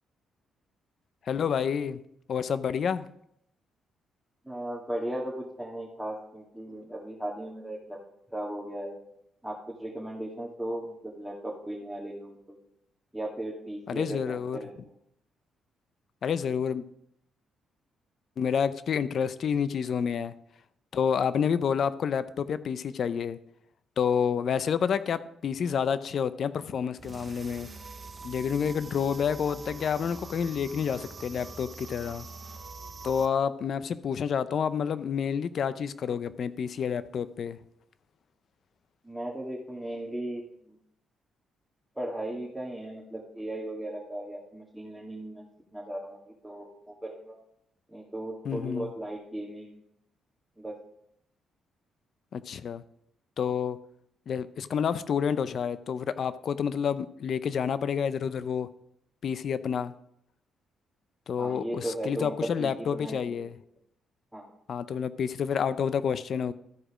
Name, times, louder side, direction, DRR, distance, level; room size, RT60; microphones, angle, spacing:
voice 1, 1.3-2.0 2.3-3.1 13.9-14.6 16.2-16.8 18.4-20.3 20.9-23.4 24.0-27.7 28.2-32.3 33.0-37.6 48.4-48.9 52.3-52.8 53.4-53.8 54.3-58.7 59.2-59.9 61.3-63.5 64.7-66.5, left 7 dB, 60° left, 15 dB, 0.5 m, -29 dB
voice 2, 4.4-8.0 8.3-9.0 9.4-12.6 13.1-14.7 39.0-40.8 42.0-45.5 45.7-47.4 47.9-49.8 50.6-50.7 61.4-63.4 64.3-64.5, right 1 dB, 5° right, -4 dB, 2.0 m, -37 dB
sound 1, 27.0-33.3, right 4 dB, 35° right, 0.8 m, -44 dB
13.5 x 5.0 x 5.0 m, 0.76 s
supercardioid pair, 60°, 0 cm